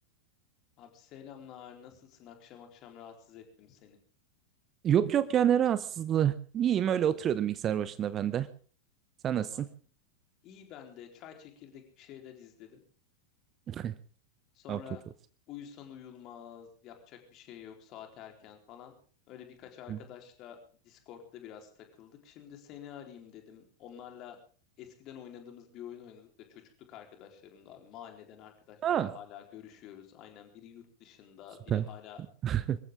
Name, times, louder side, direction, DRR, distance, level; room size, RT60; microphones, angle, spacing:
voice 1, 0.8-4.0 9.3-9.6 10.4-12.8 14.5-15.0 15.5-18.9 19.3-20.6 20.8-24.4 24.8-26.6 26.9-32.2, left 9 dB, 35° left, 4 dB, 4.0 m, -49 dB
voice 2, 4.8-8.5 9.2-9.7 13.7-13.9 14.7-14.8 19.9-20.0 28.8-29.2 31.7-31.8 32.4-32.8, right 10 dB, 30° right, 15 dB, 0.8 m, -27 dB
25.0 x 14.5 x 3.7 m, 0.42 s
figure-of-eight pair, 90°, 0 cm